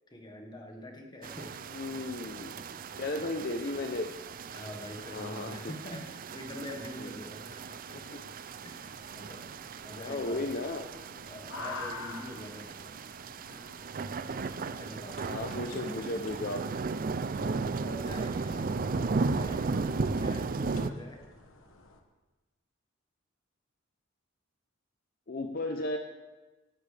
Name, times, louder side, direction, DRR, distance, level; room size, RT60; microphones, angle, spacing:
voice 1, 0.1-1.7 2.5-2.7 4.5-8.0 8.6-9.5 9.8-10.6 11.3-13.0 13.5-13.7 14.7-15.5 17.3-21.2, equal, 20° left, 2 dB, 1.5 m, -45 dB
sound 1, 1.2-20.9, right 4 dB, 45° right, 0.4 m, -36 dB
voice 2, 1.7-2.6 2.9-4.1 5.1-5.7 7.0-7.1 7.9-8.2 10.0-10.9 13.5-13.8 15.2-16.7 25.3-26.0, left 2 dB, 45° left, 4 dB, 0.7 m, -35 dB
sound 2, 8.7-22.0, left 3 dB, 70° left, 1.3 m, -49 dB
17.0 x 12.0 x 3.4 m, 1.2 s
head